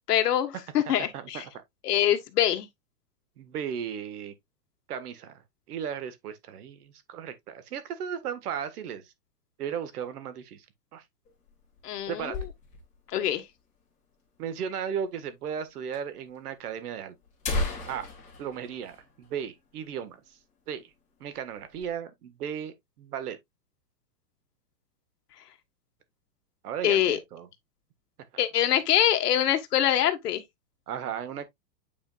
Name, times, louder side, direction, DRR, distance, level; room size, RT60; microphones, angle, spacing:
voice 1, 0.1-1.4 1.8-2.7 11.8-12.4 13.1-13.4 26.8-27.2 28.4-30.4, left 11 dB, 70° left, 1.6 m, -24 dB
voice 2, 0.9-1.4 3.4-4.3 4.9-5.4 5.7-9.1 9.6-10.7 10.9-11.0 12.1-12.5 14.4-17.1 17.9-18.1 18.4-20.4 20.7-20.9 21.2-23.4 26.6-27.5 30.9-31.5, right 8 dB, 65° right, 1.7 m, -35 dB
sound 1, 11.2-13.1 13.4-13.5 13.7-13.8 14.5-14.6 15.5-15.6 15.9-16.0 16.8-16.9 17.2-19.8 20.1-20.3 20.7-20.9 21.3-21.9, left 2 dB, 15° left, 2.3 m, -35 dB
8.8 x 4.9 x 2.4 m
supercardioid pair, 160°, 49 cm